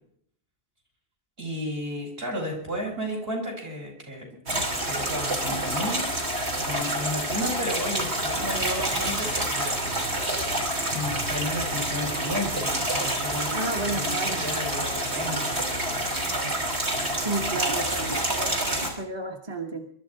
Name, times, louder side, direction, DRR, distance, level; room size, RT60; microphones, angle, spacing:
voice 1, 1.4-6.1 6.5-10.2 10.9-16.1, left 1 dB, 65° right, 1 dB, 5.7 m, -33 dB
sound 1, 4.5-18.9, right 1 dB, 85° right, 3.5 m, -28 dB
voice 2, 13.5-14.5 17.2-19.9, right 2 dB, 25° right, 4 dB, 1.2 m, -32 dB
22.0 x 12.0 x 4.8 m, 0.62 s
omnidirectional pair, 1.1 m